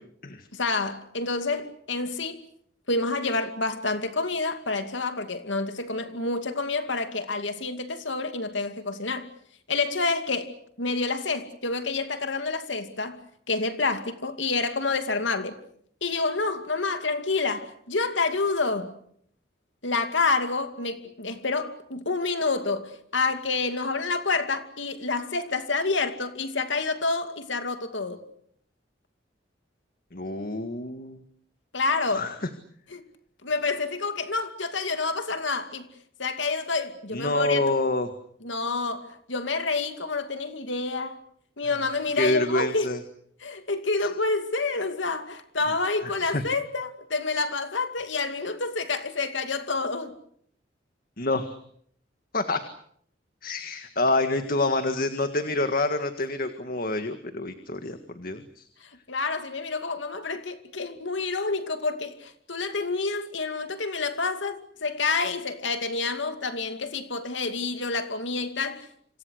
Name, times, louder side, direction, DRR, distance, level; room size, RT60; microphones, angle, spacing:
voice 1, 0.5-2.4 2.9-9.3 9.7-13.2 13.5-15.6 16.0-19.0 19.8-28.2 31.7-32.2 32.9-33.0 33.4-35.9 36.2-37.6 38.4-41.2 41.6-42.9 43.4-50.2 58.8-68.9, left 3 dB, 80° left, 2.5 m, -28 dB
voice 2, 30.1-31.2 32.1-32.5 37.1-38.1 42.2-43.0 44.0-44.1 46.0-46.4 51.2-51.6 52.3-52.6 53.4-58.7, left 2 dB, 50° left, 1.8 m, -27 dB
28.5 x 26.5 x 6.5 m
head